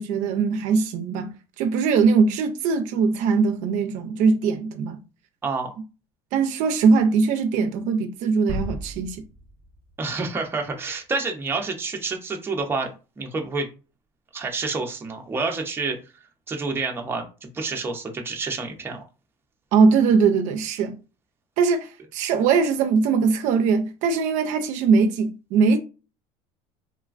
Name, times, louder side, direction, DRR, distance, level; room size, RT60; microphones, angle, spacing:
voice 1, 0.0-5.0 6.3-9.2 19.7-21.0 21.6-25.8, right 5 dB, 65° right, 0.4 m, -21 dB
voice 2, 5.4-5.7 10.0-13.7 14.3-16.0 16.5-19.0, right 3 dB, 15° right, 0.6 m, -28 dB
sound 1, 8.5-10.4, equal, 30° left, 1.0 m, -35 dB
3.2 x 2.2 x 2.4 m
cardioid pair, 125°, 14 cm